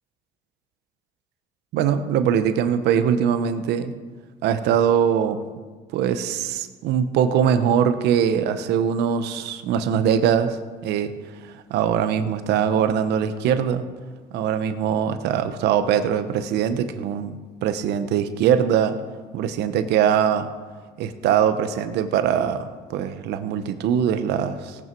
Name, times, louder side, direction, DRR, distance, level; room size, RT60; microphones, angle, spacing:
voice 1, 1.7-3.9 4.4-5.4 5.9-10.6 10.8-11.1 11.4-13.9 14.3-19.0 19.3-20.5 21.0-24.8, right 8 dB, 85° right, 10 dB, 1.0 m, -22 dB
18.0 x 8.6 x 4.6 m, 1.4 s
cardioid pair, 110°, 17 cm